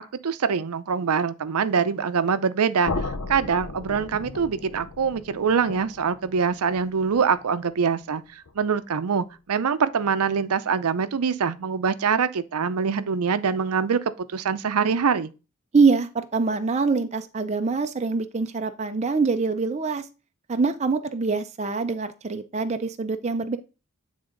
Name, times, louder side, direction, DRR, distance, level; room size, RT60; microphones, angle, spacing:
voice 1, 0.2-3.0 3.3-14.0 14.3-15.3, right 6 dB, 90° right, 0.5 m, -24 dB
sound 1, 2.8-8.7, left 3 dB, 80° left, 0.8 m, -36 dB
voice 2, 15.7-20.0 20.5-23.6, right 4 dB, 30° right, 0.5 m, -24 dB
8.7 x 3.6 x 3.8 m
head